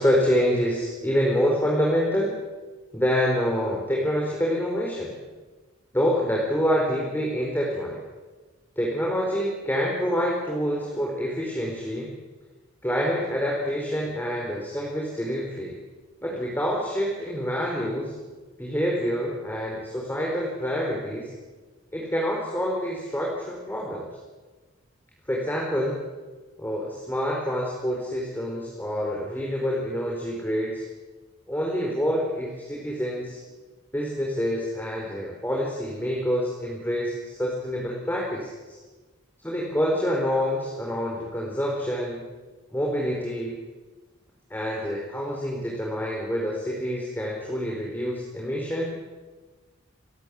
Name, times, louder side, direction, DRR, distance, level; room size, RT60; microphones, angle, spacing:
voice 1, 0.0-2.3 2.9-5.2 5.9-8.0 8.8-12.1 12.8-15.8 16.2-18.1 18.6-21.3 21.9-24.1 25.3-26.0 26.6-30.8 31.5-33.4 33.9-38.8 39.4-42.2 42.7-43.5 44.5-48.9, equal, 10° left, -3 dB, 4.7 m, -27 dB
29.5 x 17.0 x 8.6 m, 1.3 s
head